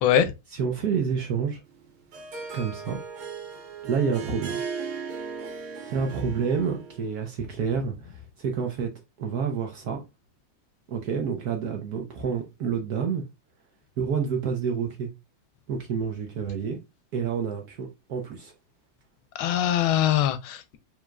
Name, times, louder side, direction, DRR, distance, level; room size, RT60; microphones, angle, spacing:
voice 1, 0.0-0.3 19.3-20.8, left 10 dB, 80° left, 1.4 m, -22 dB
voice 2, 0.5-1.6 2.5-3.0 3.8-4.6 5.9-8.9 9.2-10.0 10.9-13.2 14.0-15.1 15.7-16.8 17.1-18.5, right 6 dB, 65° right, 1.0 m, -28 dB
Harp, 1.7-7.0, right 6 dB, 85° right, 1.8 m, -37 dB
4.8 x 3.6 x 2.3 m
omnidirectional pair, 2.2 m